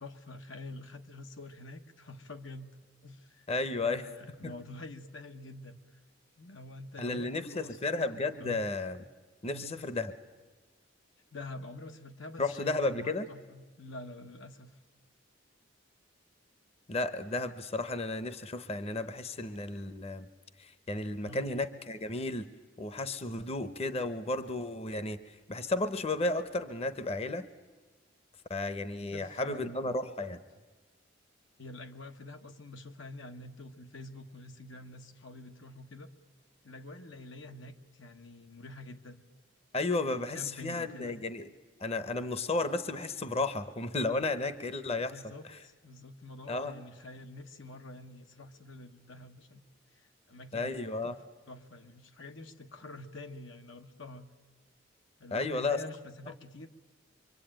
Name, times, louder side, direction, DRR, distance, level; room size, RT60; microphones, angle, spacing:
voice 1, 0.0-3.4 3.8-6.0 6.4-8.7 9.5-9.8 11.3-14.8 21.2-21.5 29.1-30.0 31.6-36.1 36.6-39.2 40.1-41.2 45.0-49.6 49.9-51.2 51.5-54.3 55.2-56.7, left 2 dB, 85° left, 5 dB, 1.5 m, -47 dB
voice 2, 3.5-4.0 4.4-4.5 7.0-9.0 9.4-10.1 12.4-13.3 16.9-20.3 20.6-22.5 22.8-27.5 28.5-30.4 39.7-41.5 41.8-45.1 45.5-45.6 46.5-46.7 50.5-51.2 55.3-55.8, left 2 dB, 35° left, 12 dB, 0.9 m, -33 dB
25.0 x 24.5 x 8.9 m, 1.3 s
head